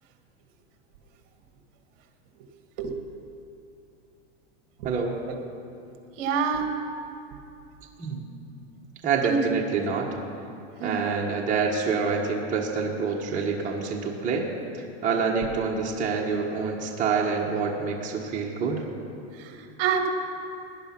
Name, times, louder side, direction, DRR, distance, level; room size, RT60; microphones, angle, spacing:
voice 1, 4.8-5.2 8.0-8.3 9.0-10.1 10.8-14.5 14.7-18.8, right 5 dB, 20° right, -2 dB, 1.4 m, -27 dB
voice 2, 6.2-6.7 9.2-9.4 10.8-11.0 19.8-20.1, right 7 dB, 50° right, 5 dB, 1.7 m, -26 dB
18.0 x 10.5 x 5.9 m, 2.7 s
supercardioid pair, 150°, 36 cm